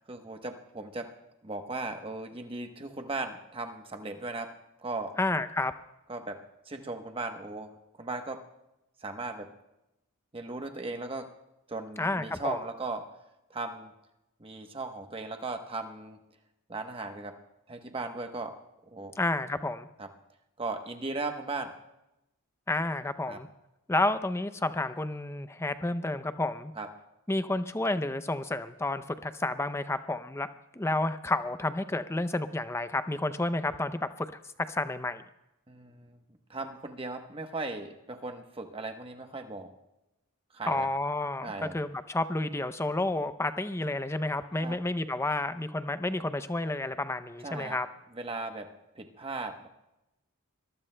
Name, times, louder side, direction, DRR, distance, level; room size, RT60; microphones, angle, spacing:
voice 1, 0.1-1.1 1.4-4.5 4.8-5.1 6.1-7.7 8.0-8.4 9.0-9.5 10.3-11.3 11.7-13.1 13.5-13.9 14.4-16.2 16.7-17.4 17.7-18.6 18.9-19.1 20.0-20.1 20.6-21.7 23.3-23.4 26.7-26.9 35.7-36.2 36.5-39.7 40.5-40.9 41.4-41.8 44.6-44.8 47.4-47.8 48.1-49.7, right 3 dB, 25° right, 5 dB, 1.0 m, -37 dB
voice 2, 5.2-5.7 12.0-12.6 19.2-19.9 22.7-23.5 23.9-26.7 27.3-30.5 30.7-34.3 34.7-35.2 40.7-47.9, left 2 dB, 10° left, 11 dB, 0.5 m, -30 dB
23.0 x 22.0 x 2.2 m, 0.92 s
head